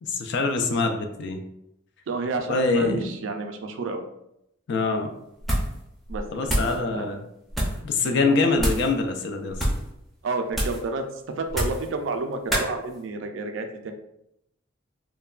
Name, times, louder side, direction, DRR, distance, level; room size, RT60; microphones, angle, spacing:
voice 1, 0.0-1.4 2.5-3.2 4.7-5.1 6.3-7.2 7.8-9.6, left 3 dB, 60° left, 5 dB, 0.3 m, -24 dB
voice 2, 2.1-4.0 6.1-7.2 10.2-13.9, right 3 dB, 70° right, 6 dB, 0.4 m, -30 dB
sound 1, 5.4-5.8 6.1-6.8 7.5-7.8 8.6-8.9 9.5-9.9 10.5-10.9 11.5-11.9 12.5-12.7, equal, ahead, 0.5 m, -26 dB
3.1 x 2.1 x 2.3 m, 0.81 s
head